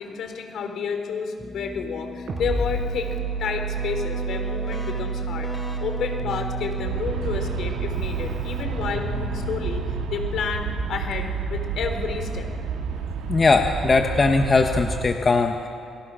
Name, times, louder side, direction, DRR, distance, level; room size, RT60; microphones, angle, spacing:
voice 1, 0.0-3.1 3.4-5.5 5.8-12.5, left 6 dB, 70° left, 6 dB, 3.7 m, -30 dB
Keyboard (musical), 1.4-10.1, left 2 dB, 5° left, 3.7 m, -38 dB
sound 1, 2.3-13.6, right 5 dB, 50° right, 6.3 m, -32 dB
Aircraft, 6.8-15.1, right 5 dB, 90° right, 2.5 m, -30 dB
voice 2, 13.3-15.7, left 3 dB, 35° left, 4 dB, 1.4 m, -20 dB
29.0 x 22.0 x 6.4 m, 2.5 s
cardioid pair, 90°, 0 cm